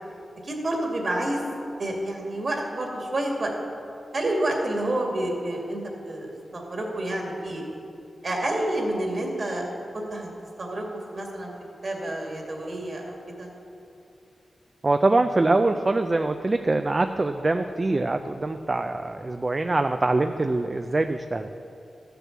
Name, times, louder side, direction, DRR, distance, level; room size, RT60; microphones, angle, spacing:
voice 1, 0.4-1.4 1.8-3.5 4.1-7.6 8.2-9.7 9.9-10.3 10.6-10.8 11.1-11.5 11.8-13.5, right 1 dB, 50° right, 0 dB, 2.3 m, -29 dB
voice 2, 14.8-21.5, right 2 dB, 35° right, 7 dB, 0.4 m, -24 dB
13.5 x 6.8 x 7.4 m, 2.6 s
wide cardioid pair, 90°, 0 cm